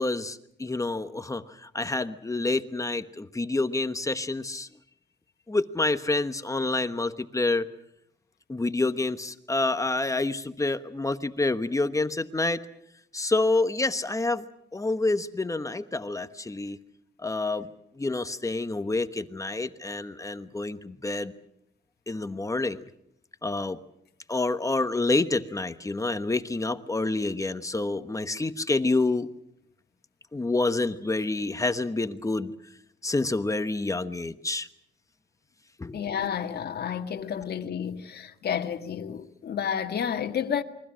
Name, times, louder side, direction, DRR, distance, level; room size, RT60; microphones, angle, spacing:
voice 1, 0.0-4.7 5.5-7.7 8.5-12.6 13.1-14.4 14.7-16.8 17.2-17.7 18.0-21.3 22.1-22.9 23.4-23.8 24.3-29.3 30.3-32.5 33.0-34.7 35.8-36.0, left 2 dB, 15° left, 1.1 m, -28 dB
voice 2, 35.9-40.6, left 8 dB, 55° left, 1.9 m, -30 dB
29.0 x 23.0 x 6.3 m
cardioid pair, 115°, 19 cm